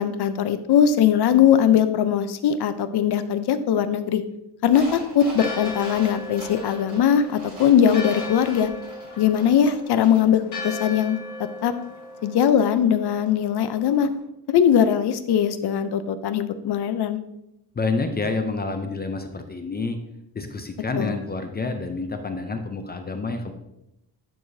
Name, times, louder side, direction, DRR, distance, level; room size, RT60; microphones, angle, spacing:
voice 1, 0.0-4.2 4.6-8.7 9.2-11.2 11.6-11.7 12.2-14.1 14.5-17.2 21.0-21.2, left 8 dB, 70° left, 11 dB, 0.6 m, -20 dB
sound 1, 4.7-10.4 10.7-10.8, right 1 dB, 20° right, 2.7 m, -40 dB
Church bell, 5.3-14.2, left 2 dB, 45° left, 1.6 m, -38 dB
voice 2, 17.7-20.0 20.3-23.5, left 3 dB, 25° left, 6 dB, 0.4 m, -28 dB
11.0 x 4.8 x 2.7 m, 0.86 s
wide cardioid pair, 180°, 41 cm